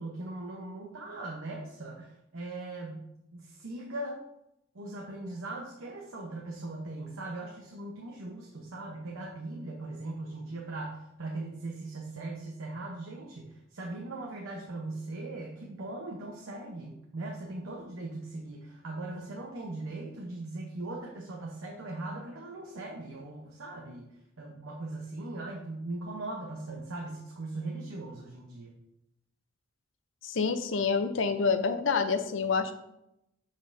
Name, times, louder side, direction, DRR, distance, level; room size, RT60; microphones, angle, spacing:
voice 1, 0.0-4.2 4.7-24.1 24.4-28.7, right 2 dB, 90° right, -1 dB, 0.9 m, -39 dB
voice 2, 30.2-32.7, left 5 dB, 65° left, 8 dB, 0.6 m, -27 dB
7.5 x 5.2 x 2.6 m, 0.83 s
head